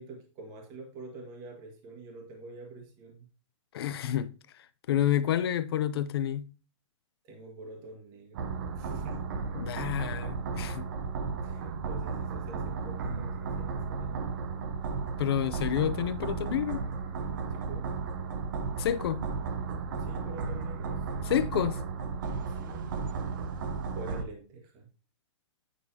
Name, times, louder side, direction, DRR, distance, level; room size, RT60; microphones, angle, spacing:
voice 1, 0.0-3.3 7.2-8.5 8.8-9.2 11.4-14.3 17.5-17.9 20.0-21.0 22.5-23.0 23.9-24.9, right 2 dB, 20° right, 1.6 m, -46 dB
voice 2, 3.7-4.3 4.9-6.5 9.5-10.9 15.2-16.8 18.8-19.2 21.2-21.8, left 10 dB, 50° left, 0.6 m, -29 dB
sound 1, 8.3-24.2, right 4 dB, 40° right, 1.0 m, -34 dB
9.0 x 6.2 x 2.8 m
hypercardioid pair, 175°, 16 cm